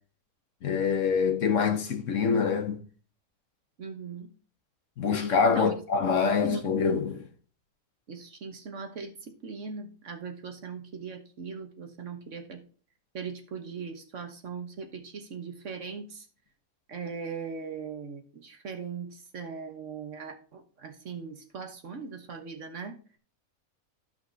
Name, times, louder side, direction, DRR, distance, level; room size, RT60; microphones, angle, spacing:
voice 1, 0.6-2.8 5.0-7.2, left 5 dB, 60° left, 1.3 m, -25 dB
voice 2, 3.8-4.3 5.5-5.7 6.4-6.8 8.1-12.6 13.1-16.3 16.9-22.9, right 5 dB, 55° right, 1.4 m, -39 dB
13.0 x 5.7 x 2.7 m
omnidirectional pair, 1.5 m